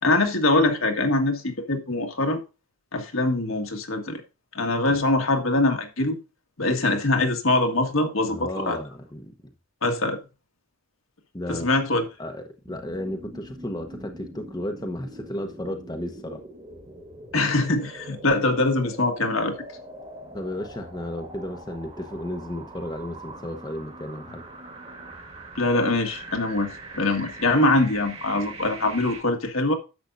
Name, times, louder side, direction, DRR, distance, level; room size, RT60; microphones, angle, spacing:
voice 1, 0.0-2.4 2.9-4.2 4.5-6.2 6.6-8.8 9.8-10.2 11.5-12.1 17.3-19.6 25.5-29.8, left 2 dB, 70° left, 1.7 m, -23 dB
voice 2, 8.3-9.3 11.3-11.8 12.2-16.4 20.3-24.4, left 1 dB, 20° left, 0.9 m, -34 dB
sound 1, 12.7-29.2, right 2 dB, 30° right, 1.8 m, -42 dB
10.5 x 7.7 x 2.6 m
head